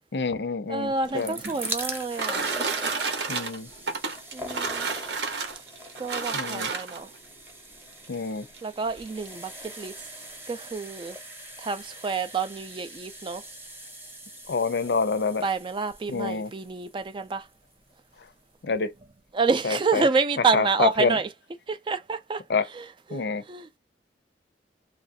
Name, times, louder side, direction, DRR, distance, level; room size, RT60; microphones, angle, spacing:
voice 1, 0.1-1.4 3.3-3.7 6.3-6.7 8.1-8.5 14.5-15.4 16.1-16.5 18.6-18.9 19.6-20.0 20.5-21.2 22.5-22.6 23.1-23.4, left 4 dB, 65° left, 0.5 m, -27 dB
voice 2, 0.7-2.5 4.3-4.9 6.0-7.1 8.6-10.1 10.5-11.2 11.6-13.4 15.4-17.5 19.3-21.3 21.7-22.4 22.7-23.8, right 4 dB, 30° right, 0.3 m, -28 dB
sound 1, 0.9-18.0 18.7-18.8 19.0-19.1, right 1 dB, 10° right, 0.8 m, -42 dB
sound 2, 1.0-7.2 8.0-8.1 8.5-8.6 9.0-9.3, right 4 dB, 75° right, 0.8 m, -31 dB
3.1 x 2.4 x 2.6 m
head